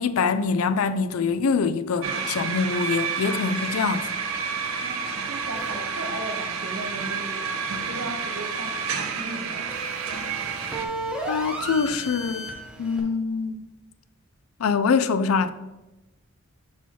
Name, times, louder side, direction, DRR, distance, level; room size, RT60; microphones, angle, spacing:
voice 1, 0.0-4.1 11.3-12.5 12.8-13.7 14.6-15.5, left 5 dB, 85° left, 0.4 m, -24 dB
sound 1, 2.0-10.9, right 5 dB, 75° right, 0.7 m, -30 dB
sound 2, 3.4-13.0, right 1 dB, 5° right, 0.9 m, -38 dB
voice 2, 4.8-9.8 10.1-10.5, right 2 dB, 55° right, 1.0 m, -37 dB
5.7 x 4.2 x 4.5 m
head